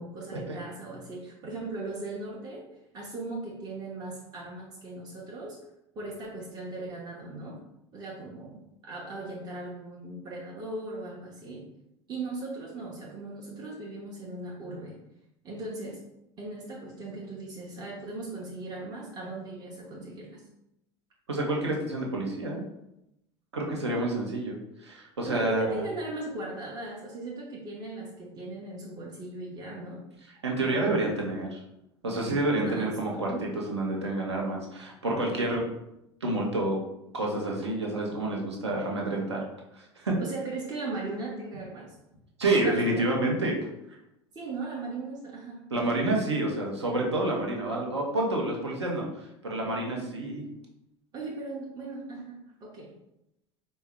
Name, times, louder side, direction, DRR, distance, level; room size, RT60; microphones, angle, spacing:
voice 1, 0.0-2.6 2.9-5.6 6.0-7.6 7.9-11.7 12.1-15.0 15.4-16.0 16.4-20.4 25.2-30.0 32.6-33.0 33.3-33.5 40.2-42.0 42.6-43.1 44.3-45.6 51.1-52.9, right 2 dB, 30° right, -2 dB, 0.7 m, -38 dB
voice 2, 21.3-22.6 23.5-25.9 30.4-31.6 32.0-35.6 36.2-36.8 37.1-39.4 39.7-40.2 42.4-43.6 45.7-49.1 49.4-50.4, right 2 dB, 75° right, -1 dB, 0.8 m, -28 dB
4.4 x 2.1 x 3.5 m, 0.85 s
figure-of-eight pair, 75°, 14 cm